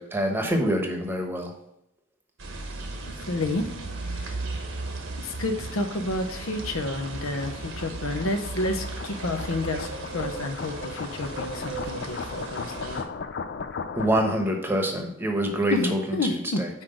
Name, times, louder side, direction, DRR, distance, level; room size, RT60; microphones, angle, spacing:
voice 1, 0.0-1.5 13.9-16.7, right 1 dB, 10° right, 2 dB, 1.0 m, -26 dB
sound 1, 2.4-13.0, right 3 dB, 65° right, 1.1 m, -36 dB
voice 2, 3.0-3.6 4.0-4.4 5.2-9.9 10.1-13.1 15.7-16.8, left 2 dB, 75° left, 6 dB, 0.8 m, -30 dB
sound 2, 4.6-14.6, left 5 dB, 50° left, 0.4 m, -38 dB
5.8 x 4.7 x 6.4 m, 0.80 s
head